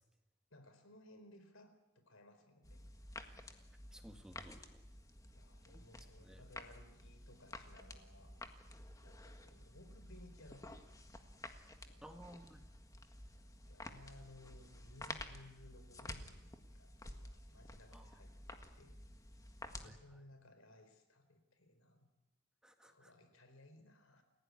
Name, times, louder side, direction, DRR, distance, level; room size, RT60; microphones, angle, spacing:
voice 1, 0.5-2.9 5.3-8.4 9.0-11.1 11.9-12.2 13.4-19.0 19.8-22.1 22.8-24.2, left 1 dB, 85° left, 9 dB, 4.5 m, -61 dB
sound 1, 2.6-19.9, left 1 dB, 15° left, 1.6 m, -52 dB
voice 2, 3.9-4.8 5.7-5.8 6.2-6.4 12.0-12.6 17.9-18.0 19.8-19.9 22.6-23.1, equal, 5° right, 5 dB, 1.8 m, -56 dB
29.0 x 16.5 x 9.7 m, 1.0 s
head